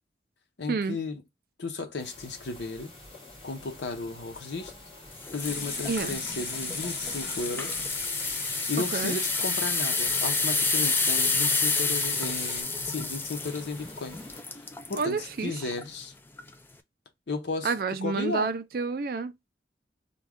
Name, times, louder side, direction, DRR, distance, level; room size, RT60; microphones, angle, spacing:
voice 1, 0.6-1.2 1.6-2.9 3.4-4.7 5.3-7.7 8.7-14.2 14.9-16.1 17.3-17.7 18.0-18.5, left 3 dB, 90° left, 0.8 m, -34 dB
sound 1, 2.0-14.4, left 2 dB, 30° left, 2.1 m, -49 dB
sound 2, 5.2-15.1 15.6-15.8 16.4-16.5, left 3 dB, 10° left, 0.3 m, -29 dB
sound 3, 5.4-12.6, left 3 dB, 60° left, 1.4 m, -37 dB
voice 2, 15.0-15.7 17.6-19.5, right 4 dB, 55° right, 0.4 m, -29 dB
3.6 x 2.3 x 3.5 m
head